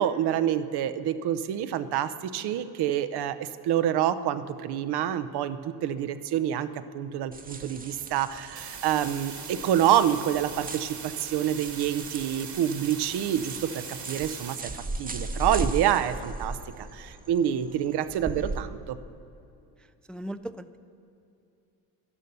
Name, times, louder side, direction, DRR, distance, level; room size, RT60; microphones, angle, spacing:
voice 1, 0.0-19.0, right 10 dB, 75° right, 12 dB, 0.8 m, -27 dB
sound 1, 7.3-18.6, right 3 dB, 20° right, 0.9 m, -38 dB
sound 2, 8.6-14.6, right 6 dB, 45° right, 1.5 m, -41 dB
voice 2, 20.1-20.8, right 1 dB, 5° left, 11 dB, 0.3 m, -37 dB
11.5 x 11.0 x 6.7 m, 2.7 s
cardioid pair, 90°, 40 cm